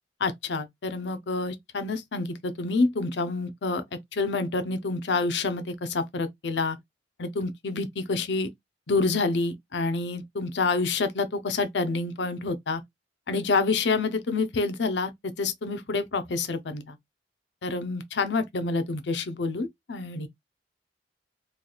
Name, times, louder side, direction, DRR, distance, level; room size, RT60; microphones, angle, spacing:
voice 1, 0.2-3.8 4.1-6.8 7.2-8.5 8.9-12.8 13.3-15.1 15.4-17.0 17.6-20.3, left 3 dB, 70° left, 0.6 m, -28 dB
3.2 x 2.3 x 3.9 m
head